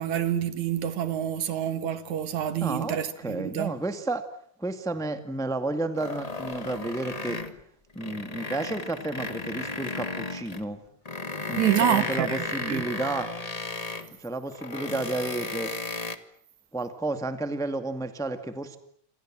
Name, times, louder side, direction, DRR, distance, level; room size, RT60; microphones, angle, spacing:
voice 1, 0.0-3.7 11.6-12.8, right 10 dB, 70° right, 2.7 m, -27 dB
voice 2, 2.6-4.2 4.6-7.4 7.9-10.8 11.5-13.3 14.2-15.7 16.7-18.8, right 2 dB, ahead, 1.4 m, -31 dB
sound 1, 6.0-7.6 7.9-10.6 11.1-14.1 14.5-16.2, left 2 dB, 45° left, 0.4 m, -34 dB
28.0 x 27.0 x 7.7 m
omnidirectional pair, 3.6 m